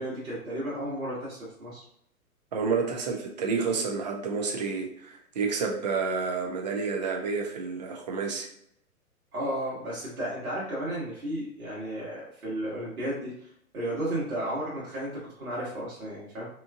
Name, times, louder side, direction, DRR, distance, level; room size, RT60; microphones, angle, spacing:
voice 1, 0.0-1.8 9.3-13.5 13.7-16.5, right 1 dB, 70° right, -8 dB, 1.4 m, -33 dB
voice 2, 2.5-8.5, right 5 dB, 30° right, 2 dB, 0.4 m, -29 dB
2.9 x 2.4 x 2.4 m, 0.70 s
figure-of-eight pair, 120°, 44 cm